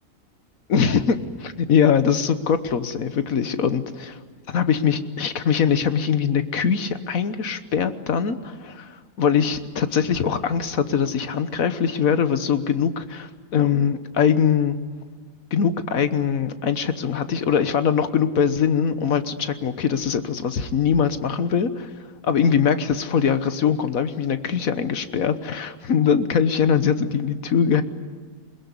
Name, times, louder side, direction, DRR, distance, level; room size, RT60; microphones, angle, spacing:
voice 1, 0.7-4.2 4.5-14.8 15.5-21.9 22.2-27.8, left 7 dB, 75° left, 11 dB, 1.6 m, -22 dB
22.0 x 21.0 x 9.8 m, 1.5 s
omnidirectional pair, 1.5 m